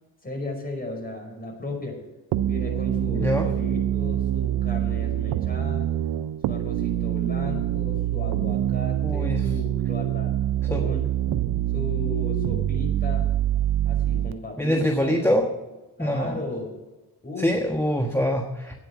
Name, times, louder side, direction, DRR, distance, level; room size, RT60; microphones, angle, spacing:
voice 1, 0.2-2.0 2.4-5.9 6.5-11.1 11.7-13.3 13.8-15.7 16.0-16.7 17.2-17.5, left 2 dB, 25° left, 2 dB, 5.4 m, -35 dB
sound 1, 2.3-14.3, right 12 dB, 85° right, 0.6 m, -25 dB
voice 2, 3.1-3.5 9.0-9.5 10.7-10.9 11.3-11.6 14.6-15.5 16.0-16.3 17.4-18.7, equal, 5° left, 2 dB, 1.3 m, -24 dB
10.5 x 9.2 x 7.3 m, 1.1 s
cardioid pair, 60°, 37 cm